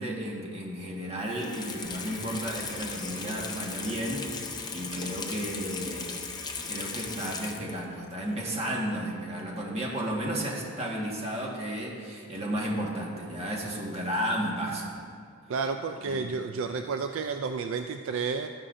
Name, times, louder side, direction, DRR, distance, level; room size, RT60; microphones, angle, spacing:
voice 1, 0.0-6.2 6.7-15.0 16.0-16.3, equal, 30° right, -3 dB, 1.5 m, -33 dB
Water tap faucet / Sink (filling or washing), 1.2-7.9 8.3-8.4, left 4 dB, 20° left, 0.6 m, -37 dB
sound 1, 1.8-7.2, left 4 dB, 10° right, 2.1 m, -54 dB
voice 2, 15.5-18.5, right 5 dB, 60° right, 7 dB, 0.3 m, -31 dB
13.0 x 9.8 x 2.6 m, 2.2 s
head